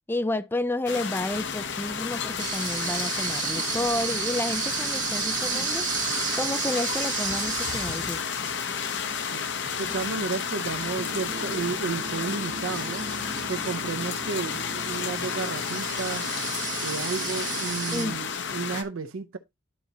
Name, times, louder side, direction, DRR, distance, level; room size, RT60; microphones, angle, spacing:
voice 1, 0.1-6.1 6.4-8.2 17.9-18.2, left 2 dB, 10° left, 0.3 m, -31 dB
sound 1, 0.9-18.8, left 6 dB, 60° left, 0.8 m, -32 dB
sound 2, 1.2-6.6, equal, 90° left, 2.0 m, -48 dB
sound 3, 2.4-18.1, right 7 dB, 40° right, 1.0 m, -34 dB
voice 2, 9.8-13.1 13.5-16.3 16.8-19.4, right 5 dB, 80° right, 0.6 m, -32 dB
11.5 x 4.1 x 2.8 m
head